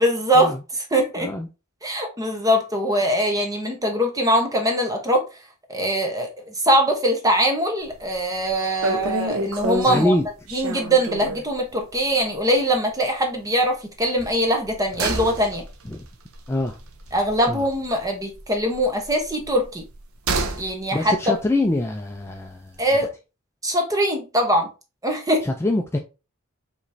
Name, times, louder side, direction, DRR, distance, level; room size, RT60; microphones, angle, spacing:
voice 1, 0.0-1.3 1.8-5.2 5.7-10.1 10.5-15.6 17.1-19.8 20.6-21.4 22.8-23.1 23.6-24.7 25.0-25.4, equal, 15° right, 1.0 m, -22 dB
voice 2, 1.2-1.5 9.9-10.2 15.9-16.0 16.5-16.8 17.5-17.6 20.9-22.7 25.4-26.0, left 1 dB, 10° left, 0.3 m, -24 dB
sound 1, 7.9-8.2 8.5-8.6 8.8-11.5 11.9-12.1 12.3-12.4 14.1-18.0 18.3-20.7 21.0-21.1, right 2 dB, 85° right, 0.7 m, -29 dB
5.1 x 3.1 x 2.7 m
head